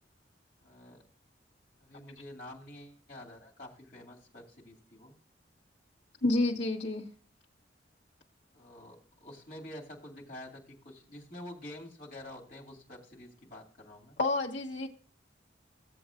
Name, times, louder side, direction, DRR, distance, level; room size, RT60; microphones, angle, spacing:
voice 1, 0.6-1.1 1.8-5.1 8.5-14.2, left 1 dB, 45° left, -2 dB, 2.6 m, -48 dB
voice 2, 6.2-7.1 14.2-14.9, left 2 dB, 70° left, -2 dB, 1.3 m, -29 dB
16.0 x 7.8 x 2.5 m, 0.43 s
head